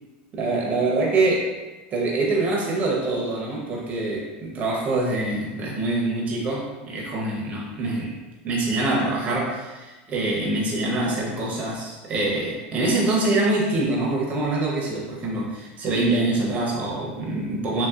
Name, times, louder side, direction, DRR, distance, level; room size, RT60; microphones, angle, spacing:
voice 1, 0.3-1.5 1.9-8.2 8.4-17.9, right 2 dB, 25° right, -3 dB, 0.7 m, -25 dB
3.0 x 2.7 x 2.4 m, 1.2 s
supercardioid pair, 150°, 6 cm